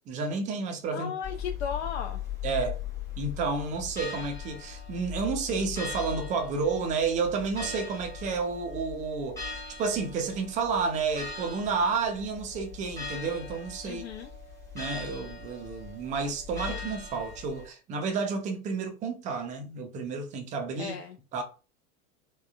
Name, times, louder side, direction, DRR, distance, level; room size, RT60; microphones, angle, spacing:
voice 1, 0.1-1.1 2.4-2.8 3.2-9.5 9.8-14.0 14.7-21.0 21.3-21.4, right 4 dB, 20° right, 0.4 m, -31 dB
voice 2, 0.9-2.2 13.8-14.3 20.8-21.2, left 7 dB, 50° left, 0.5 m, -35 dB
sound 1, 1.2-17.7, left 6 dB, 5° left, 1.0 m, -40 dB
3.5 x 2.1 x 2.3 m
figure-of-eight pair, 90°, 43 cm